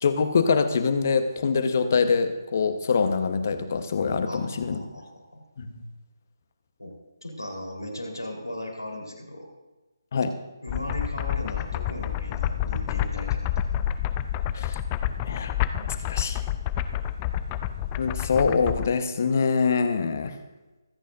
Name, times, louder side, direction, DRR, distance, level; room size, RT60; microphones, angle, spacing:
voice 1, 0.0-4.8 5.6-5.8 10.1-10.3 14.5-14.8 15.3-16.4 18.0-20.3, left 5 dB, 40° left, 9 dB, 1.1 m, -24 dB
voice 2, 4.3-5.4 6.8-6.9 7.2-9.5 10.6-13.5, left 1 dB, 85° left, 0 dB, 3.9 m, -37 dB
sound 1, 10.7-18.9, left 11 dB, 20° left, 0.4 m, -29 dB
24.5 x 8.8 x 2.6 m, 1.2 s
figure-of-eight pair, 150°, 2 cm